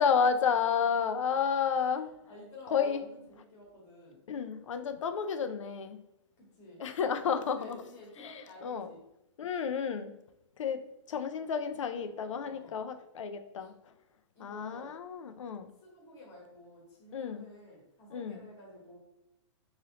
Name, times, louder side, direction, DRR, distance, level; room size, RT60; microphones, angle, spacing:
voice 1, 0.0-2.1 2.7-3.0 4.3-6.0 6.8-7.8 8.2-8.9 9.4-10.1 10.6-10.8 11.1-13.7 14.4-15.7 17.1-17.5 18.1-18.4, left 6 dB, 90° left, 10 dB, 0.5 m, -31 dB
voice 2, 1.7-4.2 6.4-6.8 7.3-9.0 12.4-12.8 13.6-13.7 14.3-15.0 15.8-19.0, left 1 dB, 20° left, -3 dB, 1.1 m, -52 dB
3.0 x 2.8 x 3.9 m, 0.86 s
hypercardioid pair, 165°, 16 cm